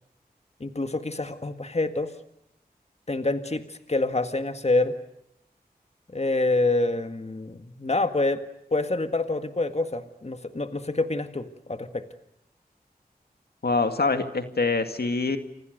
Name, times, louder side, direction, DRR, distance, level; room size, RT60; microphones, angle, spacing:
voice 1, 0.6-2.1 3.1-4.9 6.1-8.4 8.7-12.1, left 2 dB, 40° left, 8 dB, 1.9 m, -26 dB
voice 2, 13.6-15.4, left 3 dB, 80° left, 8 dB, 2.2 m, -25 dB
30.0 x 25.5 x 6.6 m, 0.77 s
wide cardioid pair, 55°, 16 cm